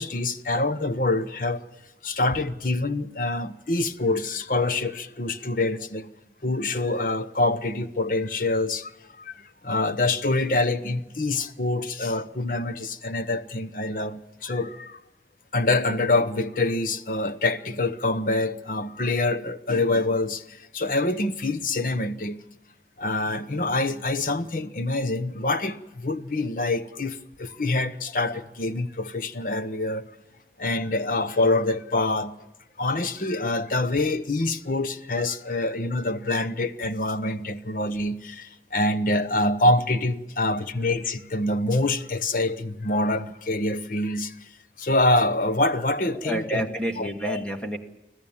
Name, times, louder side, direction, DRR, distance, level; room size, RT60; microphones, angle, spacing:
voice 1, 0.0-1.6 2.0-6.1 6.4-8.9 9.2-15.0 15.5-22.4 23.0-30.1 30.6-32.3 32.8-44.5 44.8-46.7 47.0-47.4, left 2 dB, 50° left, 0.9 m, -26 dB
voice 2, 46.2-47.8, right 1 dB, 5° left, 1.2 m, -29 dB
25.0 x 16.0 x 7.2 m
head